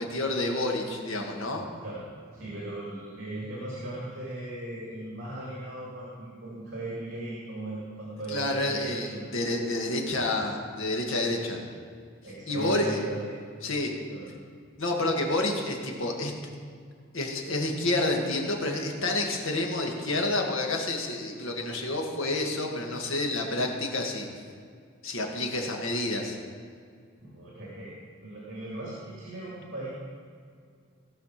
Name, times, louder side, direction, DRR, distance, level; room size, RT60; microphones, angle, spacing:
voice 1, 0.0-1.7 8.3-11.6 12.5-13.0 13.6-13.9 14.8-16.3 17.1-24.3 25.0-26.4, left 2 dB, 75° left, 1 dB, 1.7 m, -29 dB
voice 2, 2.3-9.3 11.5-11.6 12.2-13.3 14.1-14.3 27.2-29.9, right 2 dB, 60° right, -6 dB, 2.5 m, -38 dB
16.5 x 5.8 x 5.8 m, 2.2 s
head